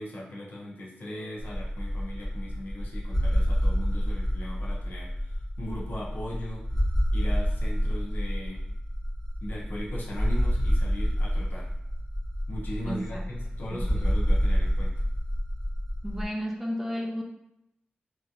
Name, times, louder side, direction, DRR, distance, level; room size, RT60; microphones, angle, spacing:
voice 1, 0.0-6.6 7.1-8.7 9.4-11.7 12.5-15.0, left 1 dB, 70° left, -4 dB, 0.8 m, -39 dB
sound 1, 1.4-16.2, equal, 10° left, 0.8 m, -28 dB
voice 2, 12.8-13.2 13.7-14.1 16.0-17.2, equal, 10° right, -1 dB, 0.4 m, -33 dB
3.0 x 2.6 x 2.4 m, 0.85 s
wide cardioid pair, 145°, 3 cm